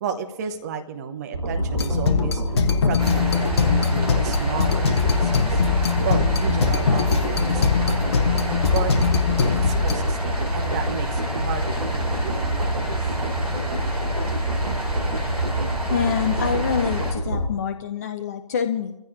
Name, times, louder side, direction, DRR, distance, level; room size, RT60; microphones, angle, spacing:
voice 1, 0.0-2.4 2.8-8.9 9.5-12.9, right 7 dB, 25° right, 6 dB, 1.0 m, -33 dB
sound 1, 1.3-17.5, right 1 dB, 65° right, 3.3 m, -26 dB
sound 2, 1.7-9.9, left 7 dB, 40° left, 0.9 m, -22 dB
sound 3, 3.0-17.1, equal, 80° right, 5.4 m, -32 dB
voice 2, 15.9-18.9, left 7 dB, 25° left, 8 dB, 0.5 m, -26 dB
25.5 x 15.0 x 2.6 m, 0.90 s
figure-of-eight pair, 140°, 20 cm